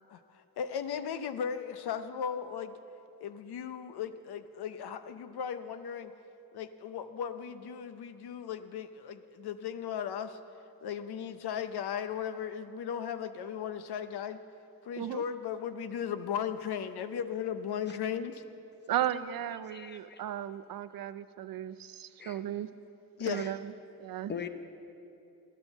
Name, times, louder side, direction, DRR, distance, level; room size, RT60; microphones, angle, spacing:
voice 1, 0.6-2.8 3.2-6.1 6.5-10.4 10.8-14.4 14.8-18.4 23.2-23.5, left 8 dB, 85° left, 10 dB, 0.9 m, -36 dB
voice 2, 18.9-22.7 23.3-23.7 24.0-24.3, right 11 dB, 65° right, 13 dB, 0.6 m, -35 dB
voice 3, 19.7-20.2 22.2-22.4 23.2-23.5 24.3-24.5, left 7 dB, 30° left, 8 dB, 0.8 m, -42 dB
14.0 x 12.0 x 7.3 m, 2.7 s
wide cardioid pair, 155°, 38 cm